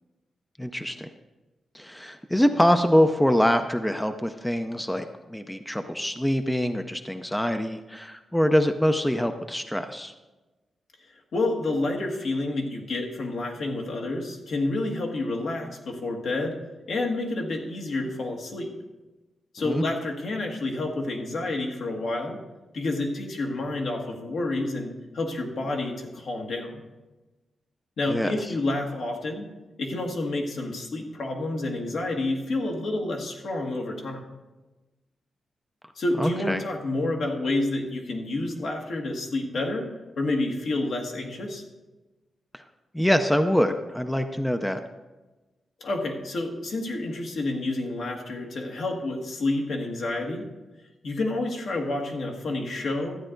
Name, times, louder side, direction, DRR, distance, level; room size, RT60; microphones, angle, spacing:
voice 1, 0.6-1.1 1.7-10.1 19.6-19.8 28.1-28.3 36.2-36.6 42.5-42.6 42.9-44.8, equal, 5° left, 8 dB, 0.5 m, -24 dB
voice 2, 11.3-16.5 16.9-18.7 19.5-22.4 22.7-26.8 28.0-29.5 29.8-34.2 35.9-39.9 40.2-41.6 45.8-50.4 51.0-53.2, left 2 dB, 65° left, 1 dB, 1.6 m, -29 dB
13.0 x 9.0 x 3.8 m, 1.1 s
wide cardioid pair, 130°, 0 cm